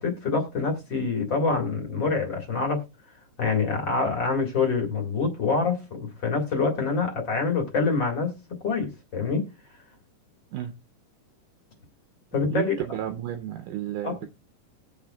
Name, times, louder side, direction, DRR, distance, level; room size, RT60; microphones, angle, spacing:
voice 1, 0.0-2.8 3.4-8.3 8.6-9.5 12.3-12.7 14.0-14.1, left 4 dB, 40° left, 2 dB, 2.3 m, -26 dB
voice 2, 12.3-14.3, right 11 dB, 80° right, 5 dB, 2.2 m, -32 dB
20.0 x 6.8 x 2.3 m, 0.28 s
omnidirectional pair, 3.8 m